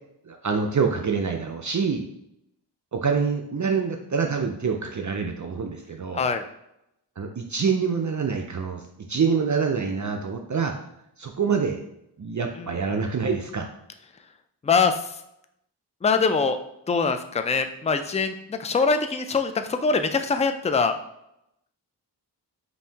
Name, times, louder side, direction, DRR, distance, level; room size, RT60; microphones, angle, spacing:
voice 1, 0.3-2.0 2.9-6.2 7.2-8.8 9.1-10.7 11.2-11.8 12.2-13.7, right 5 dB, 45° right, 3 dB, 0.5 m, -26 dB
voice 2, 6.1-6.4 12.6-12.7 14.6-15.0 16.0-16.6 16.9-20.9, left 4 dB, 20° left, 8 dB, 0.3 m, -23 dB
5.4 x 2.7 x 2.8 m, 0.81 s
wide cardioid pair, 65°, 42 cm